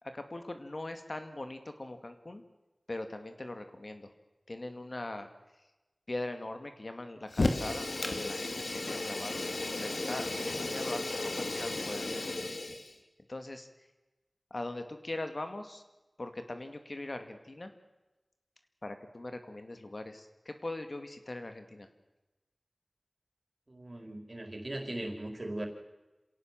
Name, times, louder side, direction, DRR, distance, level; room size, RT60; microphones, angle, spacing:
voice 1, 0.0-2.4 2.9-4.1 4.5-5.3 6.1-12.3 13.3-13.7 14.5-15.8 16.2-17.7 18.8-21.9, left 2 dB, 55° left, 7 dB, 2.3 m, -41 dB
Fire, 7.3-12.9, left 2 dB, 80° left, 2.4 m, -34 dB
voice 2, 23.7-25.7, right 1 dB, 50° right, 4 dB, 4.4 m, -39 dB
27.0 x 17.0 x 7.6 m, 1.1 s
wide cardioid pair, 40°, 0 cm